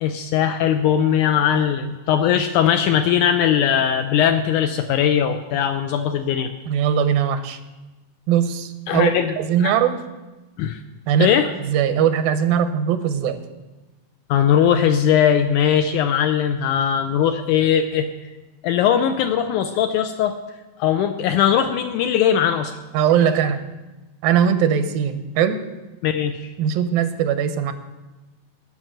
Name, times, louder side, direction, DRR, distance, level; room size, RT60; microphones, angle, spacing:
voice 1, 0.0-6.5 8.9-9.3 9.6-9.7 10.6-10.8 11.2-11.5 14.3-18.1 18.6-20.4 20.8-22.7 26.0-26.5, left 9 dB, 80° left, 7 dB, 1.9 m, -19 dB
voice 2, 6.7-7.6 8.3-10.0 11.1-11.3 11.6-13.4 22.9-23.6 24.2-25.6 26.6-27.7, right 8 dB, 85° right, 9 dB, 2.6 m, -20 dB
12.5 x 6.0 x 8.9 m, 1.1 s
omnidirectional pair, 4.0 m